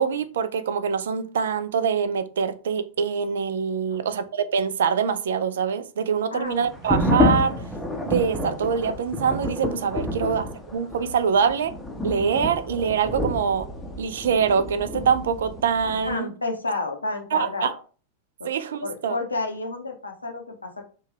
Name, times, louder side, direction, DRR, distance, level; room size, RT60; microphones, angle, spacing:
voice 1, 0.0-7.5 8.1-10.4 10.7-11.7 12.0-13.7 14.0-16.3 17.3-17.7 18.4-19.2, right 6 dB, 60° right, 0.3 m, -24 dB
voice 2, 6.3-6.7 10.1-10.3 16.0-17.8 18.4-18.5 18.8-20.8, left 3 dB, 80° left, 0.6 m, -31 dB
sound 1, 6.7-16.1, left 1 dB, 10° left, 0.6 m, -28 dB
2.6 x 2.2 x 3.3 m
figure-of-eight pair, 90°, 0 cm